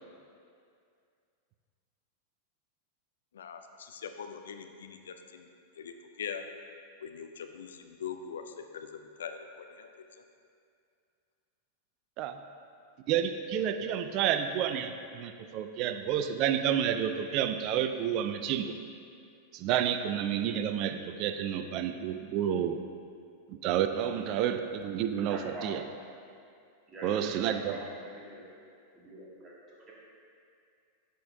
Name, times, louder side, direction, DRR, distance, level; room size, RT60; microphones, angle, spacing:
voice 1, 3.3-5.5 5.8-6.5 7.0-9.9, left 7 dB, 65° left, 6 dB, 0.4 m, -42 dB
voice 2, 13.1-18.7 19.5-22.8 23.5-25.8 27.0-27.8, right 9 dB, 40° right, 8 dB, 0.4 m, -30 dB
voice 3, 25.3-25.7 26.9-27.8 28.1-28.4 28.9-29.5 29.9-30.0, right 2 dB, 25° right, -5 dB, 1.6 m, -45 dB
9.7 x 5.0 x 2.7 m, 2.3 s
figure-of-eight pair, 90°, 0 cm